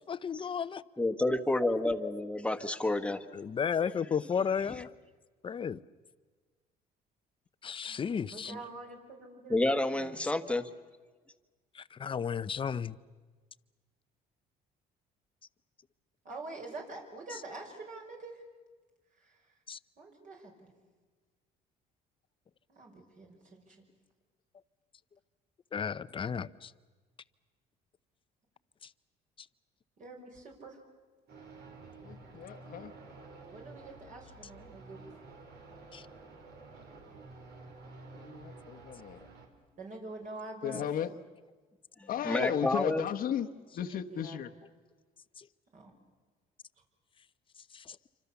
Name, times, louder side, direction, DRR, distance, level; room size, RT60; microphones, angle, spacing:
voice 1, 0.1-0.8 3.3-4.9 5.4-5.8 7.6-8.5 11.7-13.0 19.7-19.8 25.7-26.7 35.9-36.1 45.4-45.5 47.7-48.0, left 7 dB, 30° left, 0.7 m, -33 dB
voice 2, 1.0-3.2 8.5-8.6 9.5-10.6 42.2-43.0, left 2 dB, 5° left, 1.4 m, -29 dB
voice 3, 7.9-10.2 16.2-18.4 19.1-19.5 20.0-20.7 22.7-23.8 30.0-30.8 33.5-35.0 39.8-40.9 44.1-44.4 45.7-45.9, right 3 dB, 50° right, 5.7 m, -46 dB
sound 1, 31.3-39.5, right 3 dB, 70° right, 4.5 m, -51 dB
voice 4, 32.0-32.9 38.2-39.2 40.6-41.1 42.1-43.5 43.7-44.5, left 9 dB, 60° left, 1.1 m, -35 dB
28.0 x 25.5 x 7.1 m
cardioid pair, 110°, 17 cm